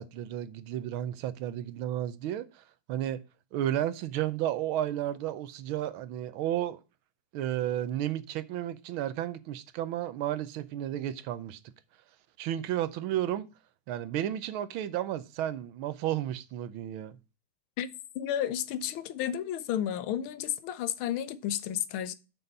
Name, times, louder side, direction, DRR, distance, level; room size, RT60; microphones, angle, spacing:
voice 1, 0.0-3.2 3.5-6.8 7.3-11.6 12.4-13.5 13.9-17.2, right 12 dB, 80° right, 1.5 m, -32 dB
voice 2, 18.1-22.1, left 10 dB, 90° left, 1.5 m, -32 dB
6.9 x 6.1 x 5.3 m
omnidirectional pair, 2.2 m